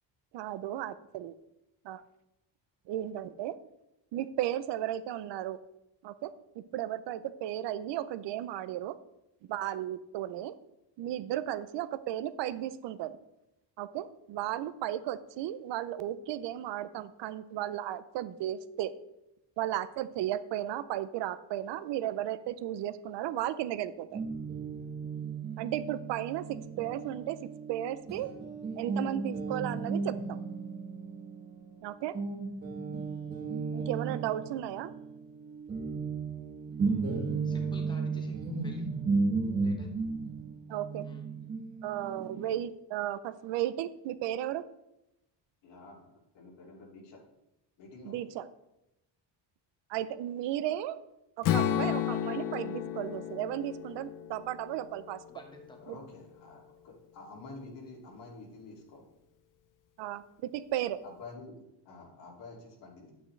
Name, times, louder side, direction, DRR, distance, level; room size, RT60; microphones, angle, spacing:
voice 1, 0.3-1.3 1.8-2.0 2.9-3.6 4.1-5.6 6.0-6.3 6.7-9.0 9.5-10.5 11.0-13.2 13.8-18.9 19.6-24.2 25.6-27.4 27.7-28.3 28.8-30.4 31.8-32.2 33.7-34.9 40.7-41.0 41.8-44.6 48.0-48.4 49.9-51.0 51.4-55.2 55.9-56.0 60.0-61.0, right 12 dB, 75° right, 14 dB, 0.6 m, -34 dB
Guitar, 24.1-31.8 32.1-42.6, right 4 dB, 25° right, 1.1 m, -35 dB
voice 2, 37.4-38.9 39.6-40.1 41.0-41.2 55.3-55.8, left 1 dB, 10° left, 2 dB, 1.0 m, -52 dB
voice 3, 45.6-47.2 47.8-48.2 55.8-59.0 61.0-63.1, left 3 dB, 75° left, -2 dB, 2.6 m, -49 dB
Strum, 51.4-55.6, left 10 dB, 45° left, 0.6 m, -32 dB
10.0 x 8.6 x 3.2 m, 0.89 s
cardioid pair, 170°, 44 cm